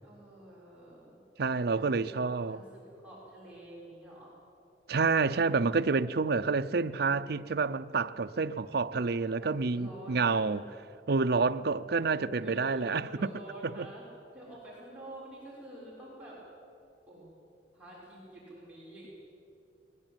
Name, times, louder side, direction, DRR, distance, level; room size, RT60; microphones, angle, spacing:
voice 1, 0.0-1.2 1.7-2.6 2.9-4.3 9.4-10.5 12.4-14.1 14.3-16.4 17.1-17.3 17.7-19.1, right 1 dB, 5° right, 6.4 m, -48 dB
voice 2, 1.4-2.6 4.9-10.6 11.1-13.3 13.6-13.9, right 4 dB, 60° right, 0.6 m, -28 dB
21.0 x 19.5 x 9.1 m
head